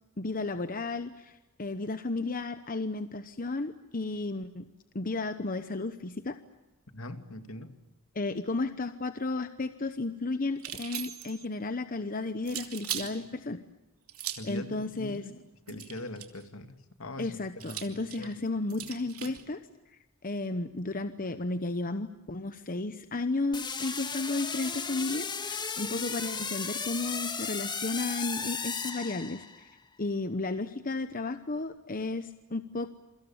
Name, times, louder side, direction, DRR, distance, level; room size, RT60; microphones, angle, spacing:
voice 1, 0.2-4.7 4.9-6.4 8.1-13.6 14.5-15.2 17.2-19.6 20.2-29.4 30.0-32.9, left 3 dB, 40° left, 10 dB, 1.0 m, -33 dB
voice 2, 6.9-7.7 14.4-18.3, left 1 dB, 70° left, 8 dB, 2.6 m, -42 dB
sound 1, 10.6-11.5 12.5-13.1 14.1-14.6 15.7-16.4 17.6-19.4, right 11 dB, 85° right, 3.0 m, -39 dB
sound 2, 23.5-29.7, left 5 dB, 20° left, 1.8 m, -35 dB
28.0 x 24.0 x 7.3 m, 1.0 s
head